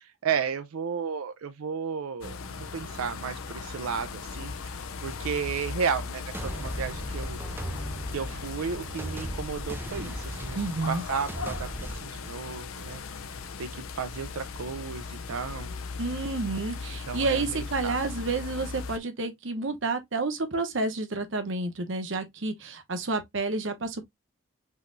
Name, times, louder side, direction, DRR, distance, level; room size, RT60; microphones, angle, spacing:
voice 1, 0.0-2.3 2.7-7.4 8.1-10.6 10.9-13.0 13.6-15.7 17.1-18.0, right 6 dB, 90° right, 0.5 m, -33 dB
sound 1, 2.2-19.0, left 4 dB, 80° left, 0.6 m, -38 dB
sound 2, 6.3-12.0, right 1 dB, 10° right, 0.3 m, -38 dB
voice 2, 10.5-11.0 16.0-24.0, right 3 dB, 60° right, 0.9 m, -30 dB
5.5 x 3.0 x 2.5 m
head